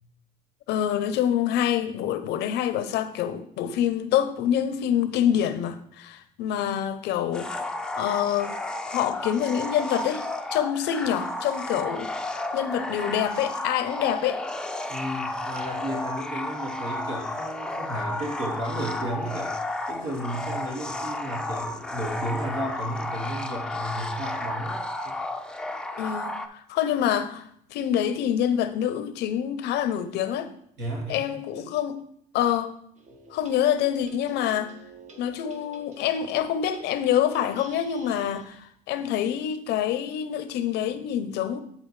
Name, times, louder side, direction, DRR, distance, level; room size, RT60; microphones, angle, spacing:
voice 1, 0.7-8.6 8.9-10.2 10.5-14.4 26.0-30.5 31.1-32.0 32.3-32.8 33.3-34.7 35.2-41.6, left 10 dB, 80° left, 0.6 m, -26 dB
sound 1, 7.3-26.5, left 1 dB, 5° left, 0.4 m, -32 dB
voice 2, 14.9-19.6 19.9-25.1 30.8-31.2 31.5-31.7, right 1 dB, 80° right, 2.2 m, -33 dB
sound 2, 33.0-38.7, right 3 dB, 45° right, 1.0 m, -50 dB
10.0 x 3.7 x 3.2 m
cardioid pair, 110°, 17 cm